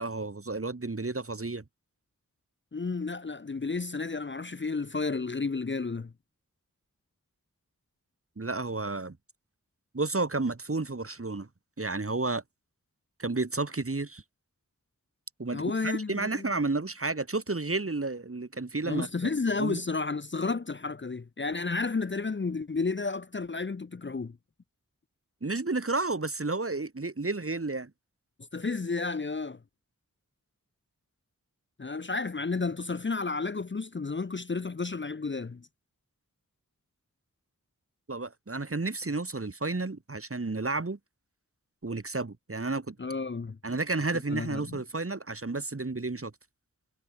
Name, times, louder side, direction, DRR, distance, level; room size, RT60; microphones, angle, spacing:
voice 1, 0.0-1.6 8.4-9.2 9.9-11.5 11.8-12.4 13.2-14.2 15.4-19.3 19.6-19.8 25.4-27.9 38.1-41.0 41.8-43.0 43.6-46.3, right 3 dB, 45° right, 1.4 m, -31 dB
voice 2, 2.7-6.1 15.5-16.5 18.8-24.4 28.5-29.6 31.8-35.7 43.0-43.6 44.3-44.8, left 4 dB, 35° left, 0.6 m, -32 dB
wide cardioid pair, 45°, 33 cm